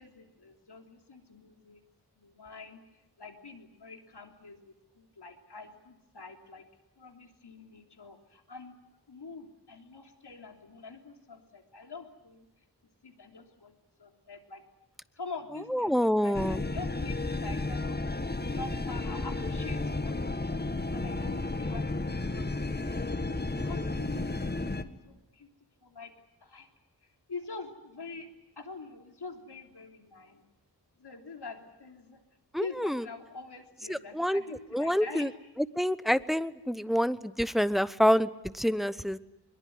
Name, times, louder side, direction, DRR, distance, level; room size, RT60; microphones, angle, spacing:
voice 1, 0.0-1.8 2.2-2.8 3.2-6.7 7.0-8.7 9.1-12.5 13.0-13.7 14.0-14.6 15.2-18.1 18.5-20.6 20.9-25.5 25.8-26.1 26.4-26.7 27.0-28.3 28.6-30.4 31.0-32.2 32.6-35.3, left 4 dB, 80° left, 4 dB, 3.4 m, -45 dB
voice 2, 15.7-16.6 32.5-33.0 33.9-34.4 34.7-35.3 35.8-39.2, equal, ahead, 15 dB, 0.9 m, -27 dB
sound 1, 16.3-24.8, left 2 dB, 25° left, 1.5 m, -32 dB
22.5 x 22.0 x 9.5 m, 0.93 s
wide cardioid pair, 65°, 40 cm